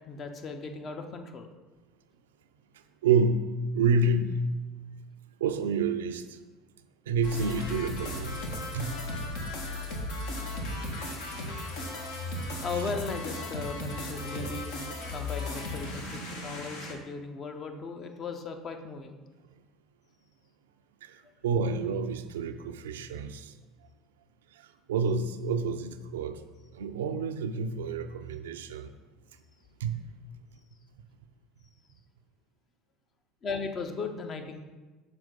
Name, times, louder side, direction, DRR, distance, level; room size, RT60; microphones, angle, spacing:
voice 1, 0.0-1.5 12.6-14.7 15.1-19.2 33.4-34.6, left 4 dB, 40° left, 0.7 m, -37 dB
voice 2, 3.0-4.4 5.4-6.4 7.1-8.5 8.7-8.9 21.0-23.5 24.5-26.4 26.7-28.9 29.8-30.0, right 4 dB, 80° right, 0.3 m, -29 dB
sound 1, 7.2-16.9, left 1 dB, 70° left, 1.0 m, -36 dB
6.1 x 4.4 x 3.9 m
hypercardioid pair, 70°, 0 cm